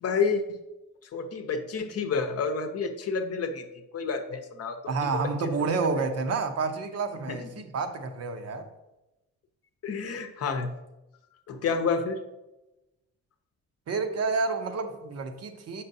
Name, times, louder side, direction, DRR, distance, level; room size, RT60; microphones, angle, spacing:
voice 1, 0.0-0.6 1.0-3.7 3.9-4.8 5.9-6.0 7.3-7.5 9.8-10.8 11.5-12.2, left 5 dB, 55° left, 0.7 m, -29 dB
voice 2, 4.9-8.7 13.9-15.8, right 4 dB, 55° right, 0.7 m, -29 dB
6.5 x 5.5 x 2.7 m
cardioid pair, 90°, 30 cm